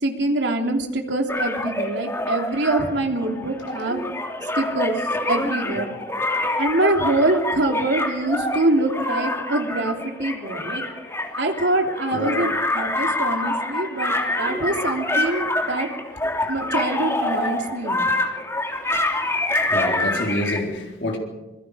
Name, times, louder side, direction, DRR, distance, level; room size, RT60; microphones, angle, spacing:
voice 1, 0.0-4.1 4.6-5.0 5.3-5.9 6.6-10.8 11.3-15.9 16.5-18.1, right 2 dB, 75° right, 3.3 m, -24 dB
sound 1, 1.3-20.6, left 2 dB, 15° left, 3.2 m, -26 dB
voice 2, 5.6-6.1 12.1-12.4 19.5-21.2, left 1 dB, 75° left, 4.1 m, -28 dB
26.5 x 23.0 x 5.2 m
head